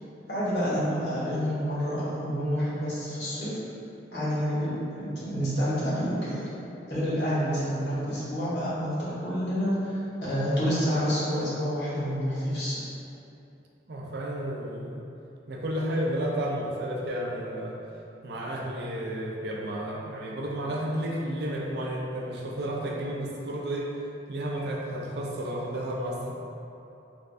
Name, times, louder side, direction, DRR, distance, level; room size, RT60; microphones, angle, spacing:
voice 1, 0.3-3.6 4.1-6.4 6.9-12.8, equal, 70° left, -10 dB, 1.3 m, -28 dB
voice 2, 13.9-15.0 15.5-17.8 18.2-23.9 24.3-26.3, right 1 dB, 65° right, -2 dB, 0.5 m, -32 dB
3.3 x 2.5 x 3.2 m, 2.8 s
head